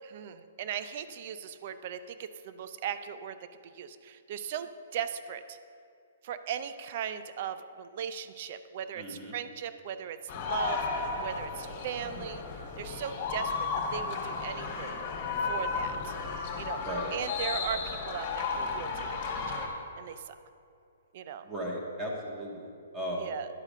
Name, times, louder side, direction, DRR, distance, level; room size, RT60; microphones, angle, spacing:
voice 1, 0.0-3.4 3.6-5.6 6.2-12.4 12.8-15.0 15.4-16.1 16.5-16.8 17.1-19.6 20.0-20.3 21.1-21.5 23.2-23.5, right 8 dB, 50° right, 11 dB, 0.5 m, -38 dB
voice 2, 9.0-9.4 16.9-17.1 21.4-22.7 22.9-23.3, right 1 dB, 20° right, -3 dB, 2.0 m, -36 dB
sound 1, 10.3-19.7, left 4 dB, 40° left, 2.0 m, -34 dB
10.5 x 4.8 x 6.6 m, 2.6 s
hypercardioid pair, 130°, 0 cm